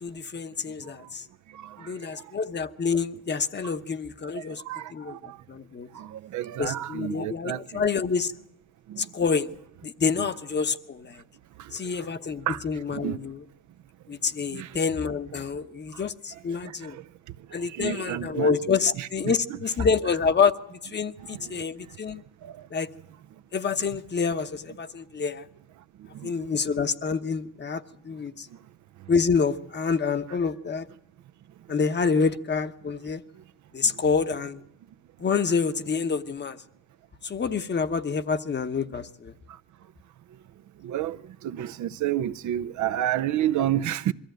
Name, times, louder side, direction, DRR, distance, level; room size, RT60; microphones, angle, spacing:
voice 1, 0.0-1.2 1.8-4.6 4.9-5.9 6.6-8.3 9.0-9.5 9.8-11.2 11.7-13.4 14.1-17.0 17.5-22.2 22.7-22.9 23.5-25.5 26.2-28.5 29.1-30.9 31.7-33.2 33.7-34.6 35.2-36.6 37.2-39.3, left 5 dB, 35° left, 1.0 m, -27 dB
voice 2, 6.3-7.6 12.5-12.6 13.0-13.2 14.6-14.7 17.8-18.5 19.0-19.6 32.2-32.3 40.8-41.2 41.4-44.1, right 12 dB, 70° right, 0.7 m, -28 dB
22.5 x 14.5 x 9.1 m
cardioid pair, 90°, 30 cm